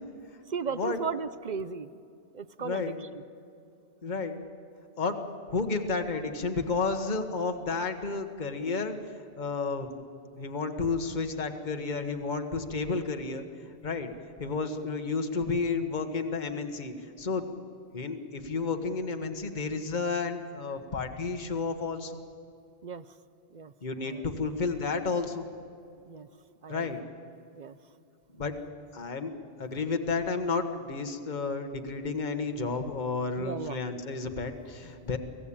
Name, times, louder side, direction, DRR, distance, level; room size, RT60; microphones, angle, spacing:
voice 1, 0.5-1.9 2.3-3.2 14.7-14.9 22.8-23.1 23.5-23.7 24.0-24.2 26.1-26.3 26.6-27.0 27.5-27.8 33.4-33.8, right 6 dB, 45° right, 14 dB, 0.7 m, -36 dB
voice 2, 2.6-3.0 4.0-4.4 5.0-5.2 5.5-9.0 9.3-10.0 10.4-13.4 13.8-14.1 14.4-17.5 17.9-22.2 23.8-25.4 26.7-27.0 28.3-28.5 28.9-29.3 29.6-35.2, left 4 dB, 40° left, 6 dB, 1.5 m, -31 dB
24.5 x 16.5 x 8.7 m, 2.6 s
omnidirectional pair, 1.2 m